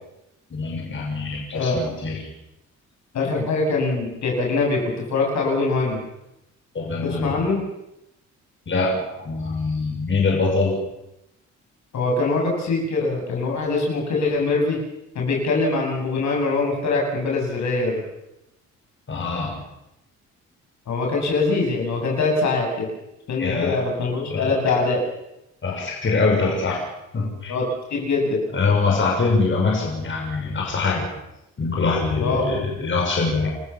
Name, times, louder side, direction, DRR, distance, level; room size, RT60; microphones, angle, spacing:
voice 1, 0.5-2.2 6.7-7.4 8.7-10.8 19.1-19.6 23.4-23.8 24.3-24.6 25.6-26.8 27.1-27.5 28.5-31.1 31.6-33.5, left 3 dB, 40° left, -1 dB, 6.4 m, -23 dB
voice 2, 3.1-6.0 7.0-7.6 11.9-14.8 15.1-18.0 20.9-22.9 23.3-25.0 27.5-28.4 32.2-32.5, left 3 dB, 65° left, 0 dB, 7.8 m, -23 dB
29.0 x 14.5 x 7.1 m, 0.88 s
cardioid pair, 90°, 30 cm